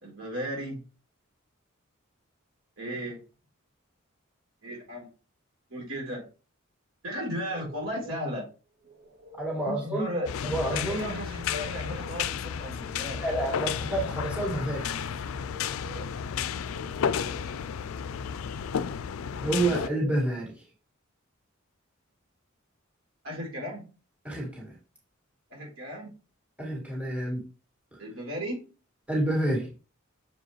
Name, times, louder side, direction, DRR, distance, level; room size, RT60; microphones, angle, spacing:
voice 1, 0.0-0.8 2.8-3.2 4.6-5.1 5.7-6.2 7.0-8.5 9.7-10.3 10.7-13.2 23.2-23.9 25.5-26.1 28.0-28.6, equal, 70° right, -3 dB, 3.6 m, -35 dB
sound 1, 7.5-8.3 8.8-9.7 11.3-12.3 12.6-13.7 15.2-16.2 16.6-17.6 19.2-20.3, right 4 dB, 55° right, 1.5 m, -47 dB
voice 2, 9.4-10.1 10.4-11.1 13.2-14.9 19.4-20.6 24.2-24.7 26.6-27.4 29.1-29.7, right 1 dB, 5° right, -4 dB, 2.1 m, -29 dB
sound 2, 10.3-19.9, left 7 dB, 75° left, 0.4 m, -32 dB
6.7 x 4.7 x 3.2 m, 0.35 s
head